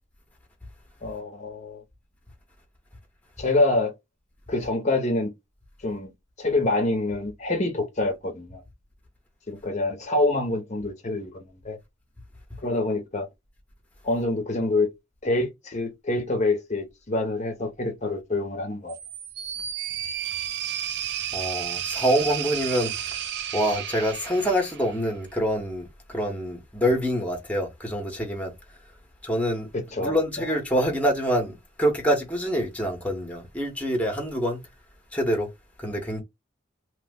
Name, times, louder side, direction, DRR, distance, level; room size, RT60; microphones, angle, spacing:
voice 1, 1.0-1.8 3.4-3.9 4.5-5.3 5.8-6.1 6.4-8.6 9.5-11.8 12.6-13.3 14.0-14.9 15.2-19.0 29.7-30.2, left 2 dB, 35° left, 0.7 m, -26 dB
sound 1, 18.9-25.1, right 10 dB, 60° right, 0.4 m, -32 dB
voice 2, 21.3-23.2 23.5-28.5 29.2-29.7 30.0-34.6 35.1-35.5 35.8-36.2, equal, 5° left, 0.8 m, -26 dB
3.0 x 2.0 x 3.4 m
head